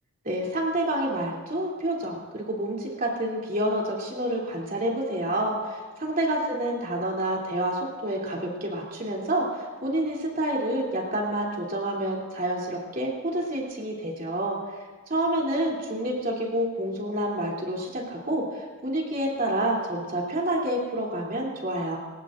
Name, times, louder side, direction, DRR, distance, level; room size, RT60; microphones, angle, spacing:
voice 1, 0.2-14.6 15.1-22.0, right 1 dB, 40° right, -3 dB, 3.0 m, -28 dB
21.0 x 19.5 x 2.6 m, 1.4 s
head